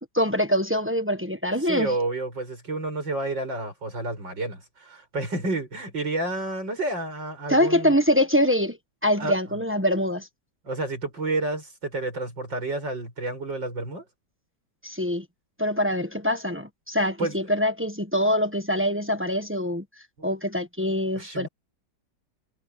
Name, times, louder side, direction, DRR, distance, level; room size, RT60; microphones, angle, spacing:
voice 1, 0.1-1.9 7.5-10.3 14.8-15.2 15.6-19.8 20.2-21.5, equal, 10° right, 1.0 m, -24 dB
voice 2, 1.6-7.9 9.2-9.4 10.6-14.0 17.2-17.3 21.1-21.5, right 2 dB, 85° right, 8.5 m, -30 dB
omnidirectional pair, 1.9 m